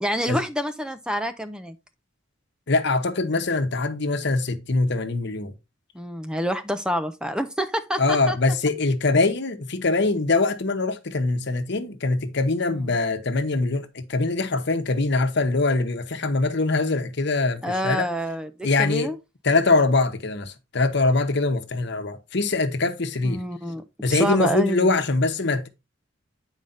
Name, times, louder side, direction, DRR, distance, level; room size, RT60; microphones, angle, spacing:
voice 1, 0.0-1.8 5.9-8.4 17.6-19.2 23.2-23.8 24.1-24.9, equal, 5° right, 0.6 m, -27 dB
voice 2, 2.7-5.5 8.0-18.1 18.6-19.1 19.4-23.4 24.0-25.7, left 3 dB, 60° left, 1.0 m, -23 dB
9.1 x 4.9 x 3.9 m
head